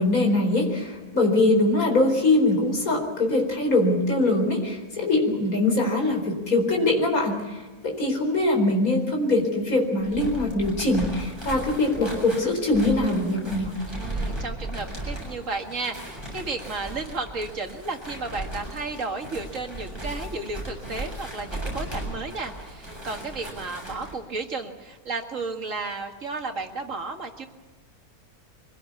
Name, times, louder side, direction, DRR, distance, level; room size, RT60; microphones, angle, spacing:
voice 1, 0.0-13.7, left 2 dB, 65° left, 2 dB, 4.9 m, -22 dB
sound 1, 10.0-24.1, right 1 dB, 15° right, 7.7 m, -36 dB
voice 2, 13.9-27.5, right 3 dB, 55° right, 4 dB, 2.3 m, -33 dB
24.0 x 17.5 x 8.4 m, 1.3 s
omnidirectional pair, 1.6 m